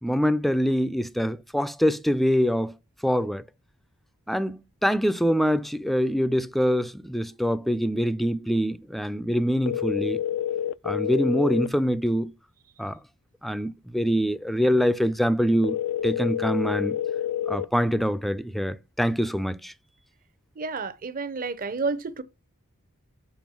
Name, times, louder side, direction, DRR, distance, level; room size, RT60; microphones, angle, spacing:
voice 1, 0.0-2.7 3.0-3.4 4.3-10.2 10.8-12.3 12.8-13.0 13.4-15.8 16.0-17.0 17.5-19.7, equal, ahead, 0.4 m, -24 dB
sound 1, 9.7-11.7 15.6-17.7, left 10 dB, 80° left, 0.3 m, -28 dB
voice 2, 20.6-22.2, right 4 dB, 40° right, 0.7 m, -30 dB
7.2 x 4.9 x 6.1 m
head